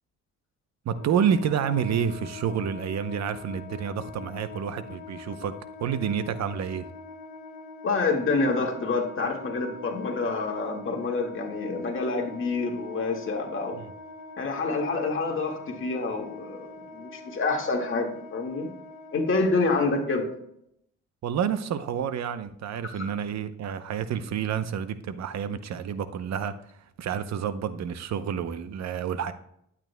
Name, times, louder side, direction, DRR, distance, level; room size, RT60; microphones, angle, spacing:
voice 1, 0.8-6.9 13.8-13.9 21.2-29.3, right 8 dB, 60° right, 0.8 m, -29 dB
Wind instrument woodwind instrument, 0.9-20.4, left 3 dB, 70° left, 1.6 m, -43 dB
voice 2, 7.8-13.8 14.4-18.7 19.1-20.3 23.0-23.1, left 3 dB, 40° left, 1.9 m, -27 dB
12.0 x 8.7 x 2.2 m
cardioid pair, 90°, 30 cm